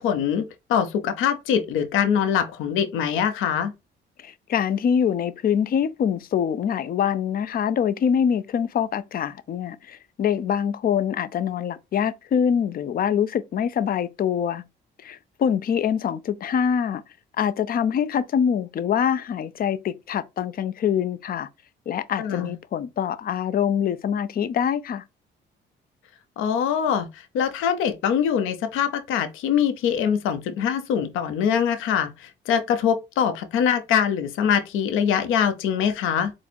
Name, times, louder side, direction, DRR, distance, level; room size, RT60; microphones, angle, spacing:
voice 1, 0.0-3.7 22.2-22.5 26.4-36.3, left 8 dB, 90° left, 0.6 m, -23 dB
voice 2, 4.2-14.6 15.0-17.0 17.4-21.5 21.9-25.0, left 8 dB, 45° left, 0.5 m, -24 dB
4.3 x 2.0 x 4.2 m
cardioid pair, 90°, 20 cm